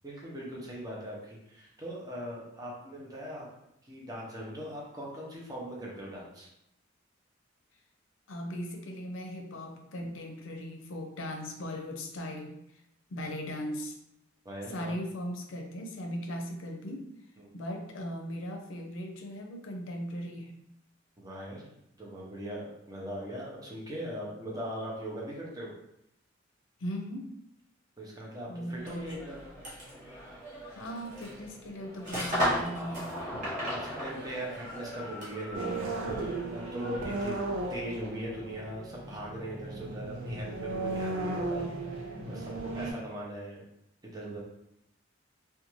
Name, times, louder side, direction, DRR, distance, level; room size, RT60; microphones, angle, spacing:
voice 1, 0.0-3.5 3.8-6.5 14.4-14.9 17.4-17.5 21.2-21.7 22.0-25.7 28.0-29.5 33.7-37.4 37.7-43.6 44.0-44.4, equal, 20° right, -4 dB, 0.6 m, -40 dB
voice 2, 8.3-12.6 13.1-14.0 14.7-17.1 17.5-20.5 26.8-27.3 28.5-29.1 30.7-33.1, equal, 80° left, 3 dB, 0.5 m, -38 dB
sound 1, 28.8-35.5, equal, 40° right, 0.9 m, -36 dB
sound 2, 34.1-37.6, left 1 dB, 60° right, 1.2 m, -48 dB
sound 3, 35.5-42.9, right 2 dB, 80° right, 0.5 m, -35 dB
2.5 x 2.2 x 3.0 m, 0.79 s
head